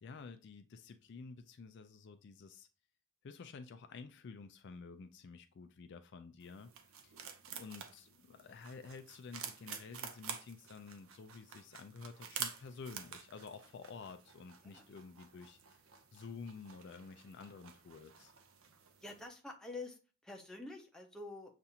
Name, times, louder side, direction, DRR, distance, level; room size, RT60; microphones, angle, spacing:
voice 1, 0.0-2.7 3.2-7.1 7.5-15.8 16.1-18.3, left 4 dB, 50° left, 0.3 m, -51 dB
sound 1, 6.4-19.3, right 7 dB, 65° right, 0.6 m, -49 dB
voice 2, 19.0-21.5, left 2 dB, 5° left, 0.6 m, -48 dB
6.9 x 2.5 x 2.7 m
head